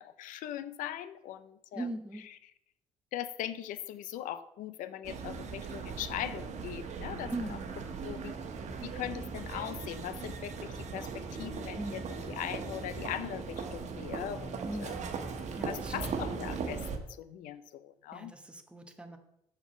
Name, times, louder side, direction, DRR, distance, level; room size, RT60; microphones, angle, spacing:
voice 1, 0.0-1.9 2.2-2.4 3.1-7.6 8.0-8.4 8.8-14.9 15.7-18.3, left 11 dB, 80° left, 14 dB, 0.5 m, -40 dB
voice 2, 1.7-2.3 7.3-7.8 11.7-12.3 14.7-15.1 15.5-16.3 18.1-19.2, right 1 dB, 10° right, 5 dB, 1.0 m, -40 dB
sound 1, 5.0-17.0, right 5 dB, 60° right, 1.1 m, -39 dB
6.9 x 4.4 x 6.2 m, 0.80 s
cardioid pair, 95°, 14 cm